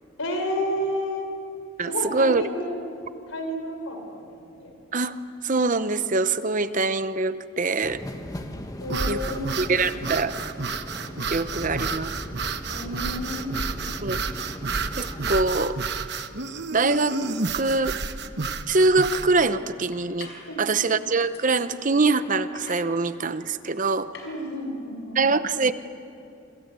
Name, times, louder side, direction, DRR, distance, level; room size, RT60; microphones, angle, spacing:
voice 1, 0.2-1.3 1.8-2.8 3.3-4.7 8.8-9.5 12.7-13.5 20.4-20.9 24.2-25.2, equal, 90° left, 4 dB, 5.1 m, -31 dB
voice 2, 1.8-2.4 4.9-8.0 9.1-9.2 9.6-10.4 11.3-12.1 14.0-14.2 15.0-15.8 16.7-17.2 17.5-18.0 18.7-20.3 20.6-24.1 25.1-25.7, right 3 dB, 40° right, 12 dB, 0.8 m, -23 dB
sound 1, 7.8-15.3, left 1 dB, 15° left, 1.4 m, -39 dB
sound 2, 8.8-19.3, right 4 dB, 55° right, 1.1 m, -31 dB
sound 3, 18.2-18.4 18.8-19.3 19.9-20.5 20.9-21.5 22.2-24.4, left 3 dB, 55° left, 5.7 m, -46 dB
28.0 x 26.0 x 8.2 m, 2.6 s
head